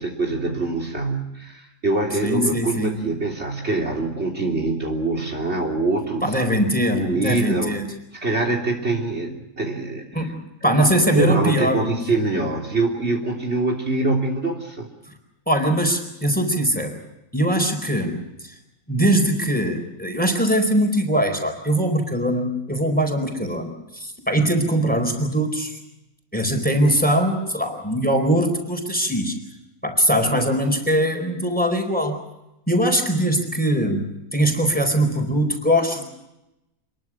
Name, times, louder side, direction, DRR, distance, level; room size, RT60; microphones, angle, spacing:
voice 1, 0.0-6.4 6.9-7.8 8.1-10.3 10.6-10.8 11.1-14.9, right 2 dB, 45° right, 3 dB, 3.7 m, -24 dB
voice 2, 2.2-3.0 6.2-7.9 10.1-12.0 15.5-17.0 17.3-18.5 18.9-25.8 26.3-29.4 29.8-32.2 32.7-36.0, equal, 5° left, 5 dB, 4.4 m, -21 dB
27.5 x 22.0 x 6.2 m, 0.90 s
omnidirectional pair, 1.6 m